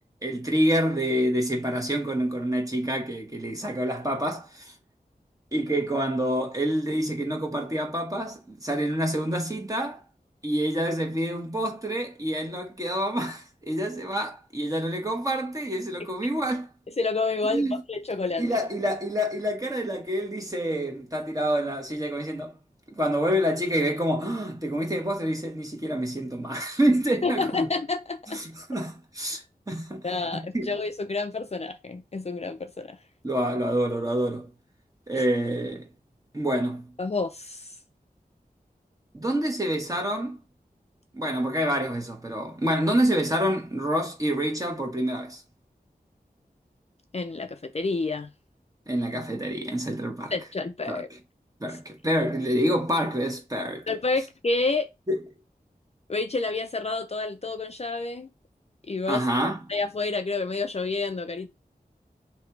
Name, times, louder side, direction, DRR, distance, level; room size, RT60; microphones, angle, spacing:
voice 1, 0.2-4.7 5.5-10.0 10.4-16.7 17.5-17.8 18.4-22.6 22.9-27.7 28.3-30.0 30.5-30.8 33.2-34.5 35.1-35.9 36.3-36.9 39.1-40.4 41.1-45.4 48.9-50.3 50.9-51.0 51.6-53.9 55.1-55.2 59.1-59.6, equal, 20° right, 1.2 m, -27 dB
voice 2, 17.0-18.4 27.2-28.4 30.0-33.0 37.0-37.7 47.1-48.3 50.3-51.1 53.9-54.9 56.1-58.3 58.9-59.2 59.7-61.5, left 3 dB, 40° left, 0.5 m, -29 dB
3.2 x 2.9 x 4.5 m
wide cardioid pair, 55°, 16 cm